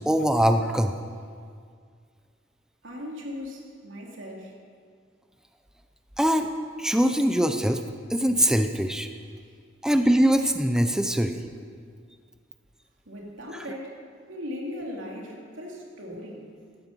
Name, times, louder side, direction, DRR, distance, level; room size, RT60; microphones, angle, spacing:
voice 1, 0.1-0.9 6.2-6.5 6.8-7.8 8.1-9.1 9.8-11.5 13.5-13.6, equal, 5° right, 6 dB, 0.6 m, -22 dB
voice 2, 2.8-4.5 13.1-14.0 14.3-16.5, left 1 dB, 90° right, -1 dB, 2.8 m, -38 dB
15.5 x 12.0 x 5.3 m, 2.1 s
head